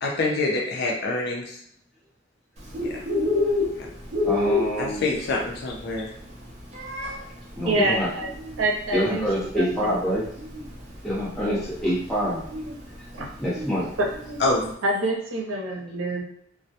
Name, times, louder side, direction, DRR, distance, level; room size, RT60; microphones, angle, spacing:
voice 1, 0.0-1.6 2.8-3.0 4.8-6.1 14.4-14.7, left 2 dB, 60° left, -1 dB, 0.5 m, -26 dB
Bird, 2.6-14.7, left 2 dB, 35° right, 0.6 m, -30 dB
voice 2, 4.2-5.0 7.6-8.1 8.9-10.2 11.0-12.4 13.4-13.9, equal, ahead, -9 dB, 0.9 m, -26 dB
voice 3, 7.7-8.3 8.6-9.3 9.5-10.0 13.2-13.3 14.8-16.2, right 1 dB, 85° right, -1 dB, 0.7 m, -26 dB
2.2 x 2.1 x 2.7 m, 0.67 s
head